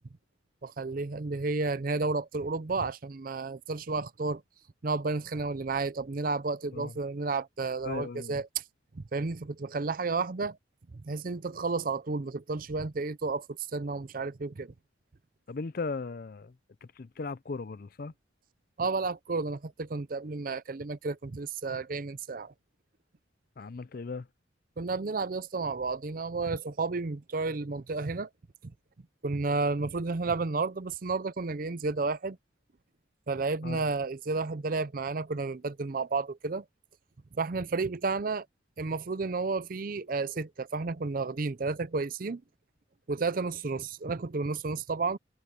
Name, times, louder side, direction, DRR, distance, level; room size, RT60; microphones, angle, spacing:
voice 1, 0.6-4.4 4.8-8.6 8.9-10.6 11.0-14.7 18.8-22.5 24.8-28.3 29.2-32.4 33.3-36.6 37.4-38.5 38.8-42.4 43.1-45.2, right 3 dB, 45° right, 0.6 m, -32 dB
voice 2, 7.8-8.4 15.5-16.5 16.8-18.1 23.6-24.3 33.6-33.9, left 4 dB, 50° left, 0.5 m, -37 dB
head